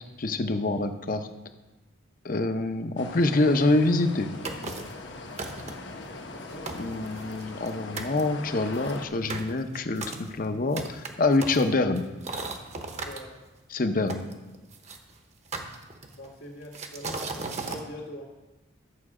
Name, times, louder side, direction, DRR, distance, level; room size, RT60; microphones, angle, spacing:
voice 1, 0.2-1.3 2.2-4.3 6.8-12.0 13.7-14.2, left 2 dB, 45° left, 8 dB, 0.7 m, -26 dB
sound 1, 3.0-9.1, left 2 dB, 65° left, 1.0 m, -41 dB
sound 2, 4.4-5.0 5.4-5.9 6.4-6.5 6.7-7.7 8.0-8.2 8.7-13.2 14.1-15.0 15.5-16.3 16.7-17.8, right 3 dB, 35° right, 0.9 m, -36 dB
voice 2, 5.9-6.9 13.0-13.4 16.1-18.3, equal, 90° left, -5 dB, 2.0 m, -43 dB
12.0 x 7.2 x 4.9 m, 1.1 s
head